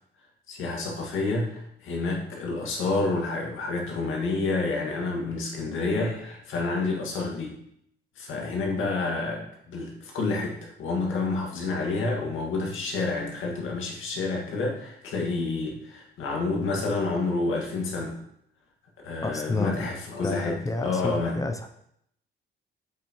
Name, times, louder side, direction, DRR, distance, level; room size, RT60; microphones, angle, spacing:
voice 1, 0.5-7.6 8.2-18.1 19.0-21.4, left 3 dB, 80° left, -1 dB, 1.9 m, -29 dB
voice 2, 19.2-19.9 20.2-21.7, left 2 dB, 15° left, 5 dB, 0.6 m, -30 dB
7.8 x 5.7 x 3.1 m, 0.73 s
cardioid pair, 90°, 20 cm